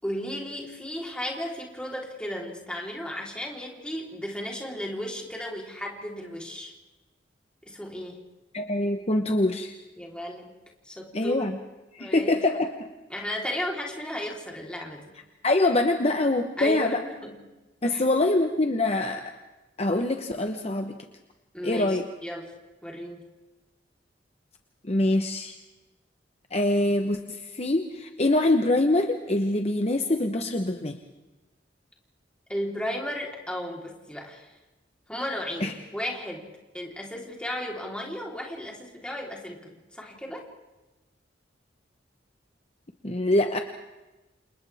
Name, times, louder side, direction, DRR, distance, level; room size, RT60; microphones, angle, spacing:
voice 1, 0.0-6.7 7.6-8.2 10.0-10.5 10.8-11.4 12.0-12.3 13.1-15.1 16.6-17.4 17.9-18.0 21.5-22.5 22.8-23.2 32.5-34.6 35.1-36.5 36.7-40.4, equal, 5° left, -2 dB, 3.8 m, -34 dB
voice 2, 8.5-9.7 11.1-11.6 11.9-12.7 15.4-17.0 17.8-19.3 19.8-21.0 21.6-22.1 24.8-25.6 26.5-31.0 35.6-35.7 43.0-43.6, left 2 dB, 35° left, 5 dB, 1.1 m, -24 dB
29.5 x 28.5 x 3.6 m, 1.1 s
head